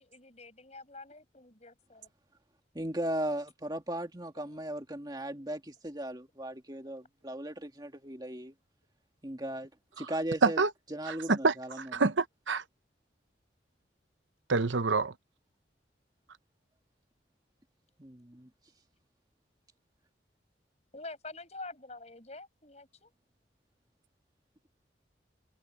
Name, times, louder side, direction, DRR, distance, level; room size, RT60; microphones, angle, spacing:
voice 1, 0.0-2.1 4.3-4.6 5.3-5.4 6.8-7.0 20.9-23.1, left 3 dB, 35° left, 7.9 m, -47 dB
voice 2, 2.7-8.5 9.2-9.7 10.0-10.6 10.9-11.9 18.0-18.5, right 1 dB, 20° right, 2.2 m, -37 dB
voice 3, 11.1-12.6 14.5-15.1, right 4 dB, 90° right, 0.9 m, -27 dB
head